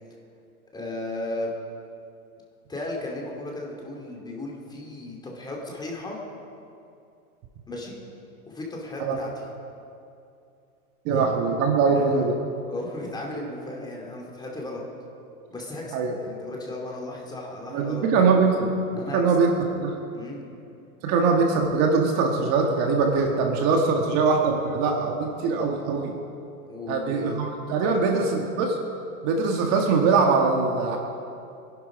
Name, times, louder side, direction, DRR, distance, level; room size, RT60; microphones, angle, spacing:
voice 1, 0.7-1.5 2.7-6.2 7.7-8.0 8.5-9.3 11.1-12.1 12.7-14.8 15.5-18.1 19.0-19.2 20.1-20.4 26.6-27.5 27.8-28.3, left 2 dB, 10° left, -2 dB, 2.8 m, -35 dB
voice 2, 11.0-12.4 15.9-16.2 17.7-18.8 19.1-19.5 19.8-19.9 21.0-26.1 26.9-28.8 29.2-31.0, right 4 dB, 35° right, 2 dB, 1.7 m, -22 dB
25.0 x 11.0 x 5.2 m, 2.6 s
hypercardioid pair, 140°, 45 cm